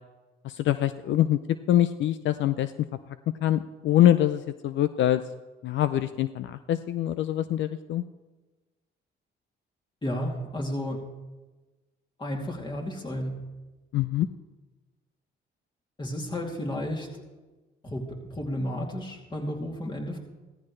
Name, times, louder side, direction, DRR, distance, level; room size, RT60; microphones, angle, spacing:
voice 1, 0.4-1.4 1.7-2.7 3.1-3.2 3.4-5.2 5.6-8.0 13.9-14.3, left 12 dB, 70° left, 12 dB, 0.5 m, -24 dB
voice 2, 10.0-11.1 12.2-13.4 16.0-17.1 17.8-20.2, equal, 25° left, -1 dB, 2.7 m, -32 dB
15.5 x 14.0 x 3.2 m, 1.2 s
cardioid pair, 90°, 20 cm